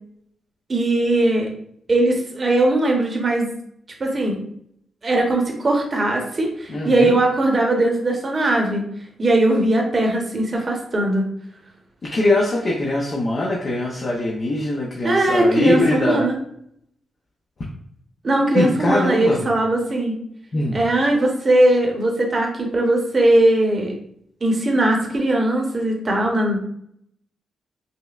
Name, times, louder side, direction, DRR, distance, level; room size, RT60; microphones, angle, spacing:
voice 1, 0.7-1.5 1.9-3.5 4.0-4.4 5.0-8.9 9.2-11.3 15.0-16.4 18.2-20.1 20.7-23.9 24.4-26.6, right 1 dB, 40° right, 1 dB, 0.9 m, -19 dB
voice 2, 6.7-7.2 12.0-16.3 18.5-19.4 20.5-20.8, left 2 dB, 50° left, -3 dB, 0.7 m, -22 dB
5.2 x 2.1 x 2.4 m, 0.69 s
cardioid pair, 75°, 0 cm